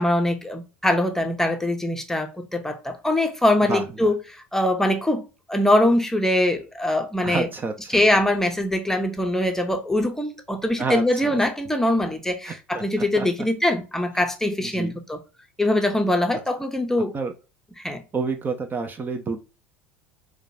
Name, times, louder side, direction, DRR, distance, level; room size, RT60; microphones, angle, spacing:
voice 1, 0.0-4.2 4.5-5.2 5.5-7.5 7.9-15.2 15.6-17.1 17.8-18.0, left 1 dB, 5° left, 0.8 m, -22 dB
voice 2, 3.7-4.1 7.2-8.0 10.8-11.4 12.4-13.3 14.6-15.0 17.1-17.3 18.1-19.4, right 4 dB, 30° right, 0.7 m, -29 dB
4.7 x 2.3 x 2.7 m
hypercardioid pair, 70°, 7 cm